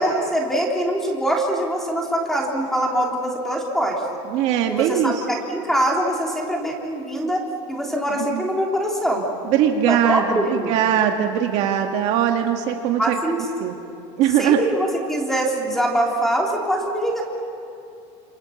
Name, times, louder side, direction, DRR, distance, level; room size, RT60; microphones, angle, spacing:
voice 1, 0.0-4.0 4.7-9.2 9.9-10.7 13.0-13.5 14.4-17.2, right 1 dB, ahead, -1 dB, 3.3 m, -23 dB
voice 2, 4.3-5.1 8.2-8.5 9.5-13.2 13.6-13.7 14.2-14.6, right 10 dB, 45° right, 3 dB, 1.8 m, -20 dB
29.5 x 28.0 x 7.2 m, 2.6 s
cardioid pair, 170°, 15 cm